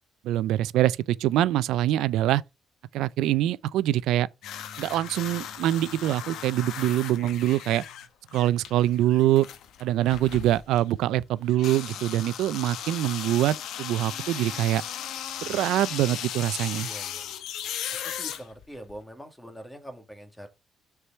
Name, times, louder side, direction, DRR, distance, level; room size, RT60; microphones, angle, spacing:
voice 1, 0.2-2.4 2.9-4.3 4.8-7.8 8.3-9.5 9.8-14.8 15.4-16.9, right 14 dB, 90° right, 0.4 m, -24 dB
sound 1, 4.4-10.9 11.5-19.0, left 9 dB, 85° left, 1.0 m, -37 dB
voice 2, 16.8-17.3 18.0-20.5, equal, 5° left, 2.0 m, -43 dB
6.6 x 4.6 x 5.4 m
cardioid pair, 90°, 0 cm